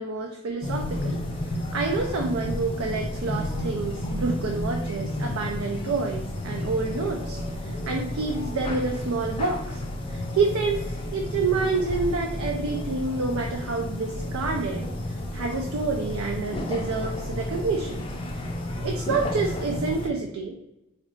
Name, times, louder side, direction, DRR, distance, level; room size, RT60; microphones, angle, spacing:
voice 1, 0.0-10.8 11.1-14.9 15.3-18.0 18.8-20.6, right 4 dB, 85° right, 2 dB, 0.4 m, -28 dB
sound 1, 0.6-20.1, left 1 dB, 25° left, 0.4 m, -31 dB
4.2 x 2.5 x 3.0 m, 0.90 s
head